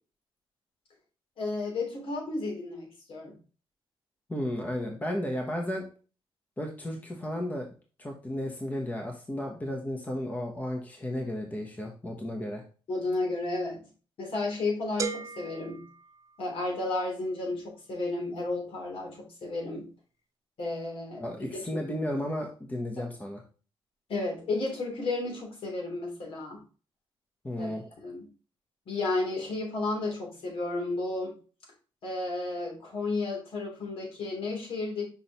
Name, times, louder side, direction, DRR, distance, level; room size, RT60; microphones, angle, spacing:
voice 1, 1.4-3.3 12.9-13.8 14.2-15.8 16.4-19.9 20.6-21.2 21.7-21.8 23.0-23.1 24.1-26.6 27.6-28.3 28.9-31.3 32.0-35.0, left 2 dB, 70° left, -1 dB, 3.1 m, -32 dB
voice 2, 4.3-5.8 6.6-7.7 8.0-12.6 21.2-23.4 27.4-27.8, left 1 dB, 15° left, 2 dB, 0.9 m, -33 dB
sound 1, 15.0-16.9, right 6 dB, 35° right, 0.4 m, -38 dB
6.1 x 5.5 x 3.0 m, 0.36 s
wide cardioid pair, 160°, 10 cm